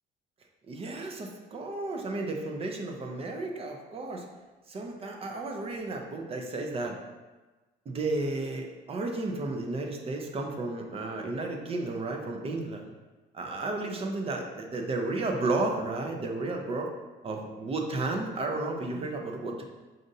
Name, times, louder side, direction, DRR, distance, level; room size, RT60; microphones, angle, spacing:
voice 1, 0.7-4.3 4.7-7.0 7.9-12.9 13.3-16.9 17.2-19.6, right 2 dB, 35° right, 2 dB, 0.5 m, -33 dB
5.2 x 2.5 x 2.6 m, 1.2 s
cardioid pair, 110°, 17 cm